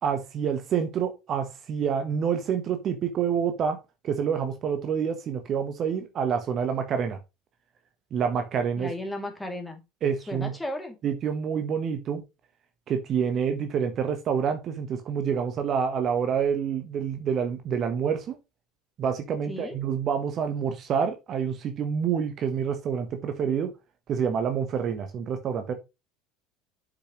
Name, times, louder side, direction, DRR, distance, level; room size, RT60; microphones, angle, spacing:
voice 1, 0.0-3.8 4.0-7.2 8.1-8.9 10.0-10.5 11.0-12.2 12.9-18.3 19.0-23.7 24.1-25.7, right 7 dB, 40° right, 1.2 m, -27 dB
voice 2, 8.7-9.8 10.3-11.0 19.5-19.8, left 1 dB, 10° left, 2.7 m, -34 dB
8.2 x 6.2 x 3.1 m
figure-of-eight pair, 70°, 0 cm